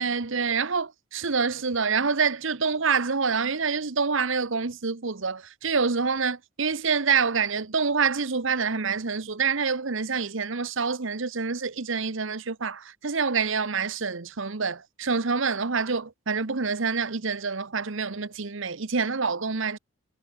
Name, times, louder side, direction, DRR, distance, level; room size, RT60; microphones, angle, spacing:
voice 1, 0.0-19.8, right 5 dB, 60° right, 1.0 m, -27 dB
head